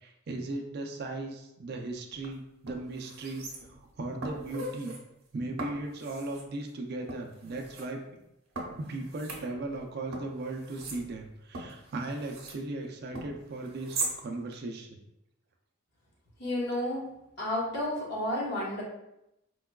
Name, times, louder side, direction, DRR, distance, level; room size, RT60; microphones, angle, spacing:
voice 1, 0.0-5.0 5.3-8.0 8.8-15.0, right 2 dB, 50° right, 3 dB, 0.4 m, -37 dB
sound 1, 2.1-2.3 2.7-3.9 4.2-5.0 5.6-6.5 7.1-7.9 8.6-9.8 10.1-12.6 13.1-14.2 14.5-14.6, right 2 dB, 85° right, 0.7 m, -40 dB
voice 2, 16.4-17.0 17.4-18.8, left 1 dB, 50° left, -5 dB, 1.0 m, -31 dB
4.5 x 2.2 x 2.2 m, 0.85 s
head